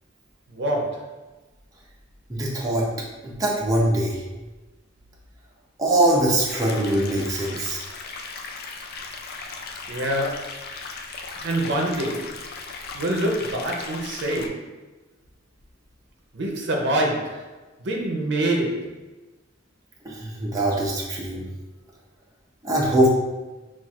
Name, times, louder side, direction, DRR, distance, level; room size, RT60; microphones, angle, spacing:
voice 1, 0.5-1.2 9.9-10.6 11.4-12.4 12.9-14.8 16.3-19.0, right 1 dB, 60° right, 0 dB, 0.6 m, -26 dB
voice 2, 2.3-2.9 3.2-4.2 5.8-7.8 20.0-21.5 22.6-23.1, right 1 dB, 20° right, -4 dB, 0.6 m, -22 dB
sound 1, 6.5-14.5, left 4 dB, 55° left, 0.4 m, -37 dB
5.7 x 2.5 x 2.4 m, 1.2 s
head